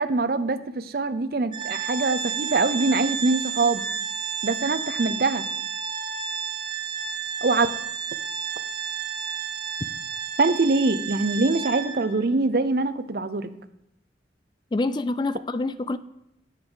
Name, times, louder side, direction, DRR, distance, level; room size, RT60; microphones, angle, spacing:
voice 1, 0.0-3.8 4.4-5.4 7.4-7.7 10.4-13.5, right 3 dB, 55° right, 12 dB, 0.6 m, -23 dB
Organ, 1.5-12.2, right 6 dB, 25° right, 0.9 m, -31 dB
voice 2, 14.7-16.0, left 2 dB, 25° left, 14 dB, 0.3 m, -26 dB
9.2 x 8.0 x 3.9 m, 0.82 s
head